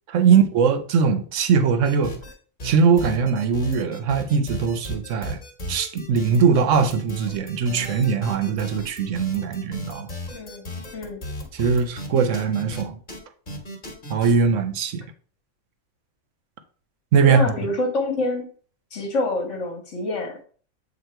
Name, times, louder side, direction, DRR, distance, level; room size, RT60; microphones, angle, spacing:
voice 1, 0.1-2.2 2.6-5.4 5.7-10.1 11.5-13.0 14.1-15.0 17.1-17.5, right 6 dB, 65° right, 1.1 m, -21 dB
sound 1, 1.9-2.3 2.6-12.8 13.1-13.2 13.5-14.3, equal, 35° left, 1.4 m, -35 dB
voice 2, 10.3-10.7 10.9-11.2 17.2-18.5 18.9-20.4, left 2 dB, 60° left, 1.4 m, -27 dB
8.0 x 2.8 x 4.4 m
omnidirectional pair, 1.4 m